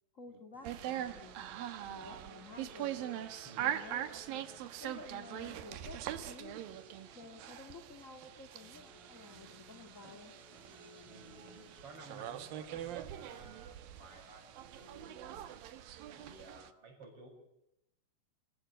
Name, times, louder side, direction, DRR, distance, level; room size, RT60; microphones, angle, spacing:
voice 1, 0.1-1.4 1.8-3.0 3.6-4.5 4.8-6.6 7.1-10.3, left 4 dB, 35° left, 7 dB, 1.3 m, -52 dB
sound 1, 0.5-7.6 8.0-16.5, equal, ahead, 4.0 m, -61 dB
sound 2, 0.6-16.7, right 11 dB, 65° right, 2.8 m, -43 dB
voice 2, 3.4-3.8 11.0-15.5 16.1-17.3, right 3 dB, 35° right, 3 dB, 7.7 m, -55 dB
28.0 x 18.0 x 8.8 m, 0.82 s
omnidirectional pair, 4.7 m